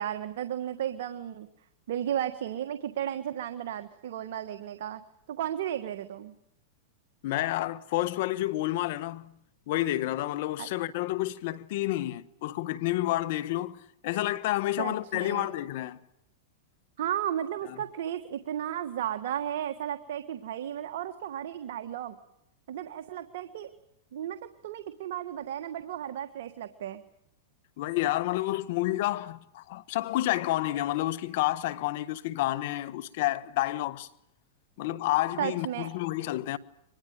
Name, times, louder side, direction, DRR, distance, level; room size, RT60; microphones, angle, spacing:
voice 1, 0.0-1.5 1.9-5.0 5.3-6.3 10.6-10.7 14.8-15.5 17.0-22.1 22.7-23.7 24.1-27.0 35.4-35.9, right 10 dB, 70° right, 1.5 m, -34 dB
voice 2, 7.2-9.3 9.7-13.8 14.0-16.0 17.7-17.8 27.8-34.1 34.8-36.6, left 16 dB, 60° left, 1.3 m, -29 dB
24.0 x 21.0 x 9.4 m
hypercardioid pair, 130°, 0 cm